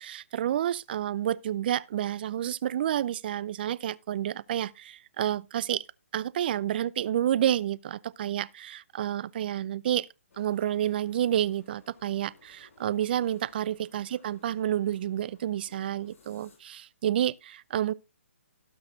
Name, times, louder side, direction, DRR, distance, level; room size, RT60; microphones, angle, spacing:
voice 1, 0.0-5.8 6.1-10.1 10.4-17.9, right 11 dB, 40° right, 0.5 m, -29 dB
sound 1, 10.3-16.6, left 4 dB, 65° left, 6.9 m, -59 dB
18.0 x 6.4 x 2.7 m
hypercardioid pair, 150°, 8 cm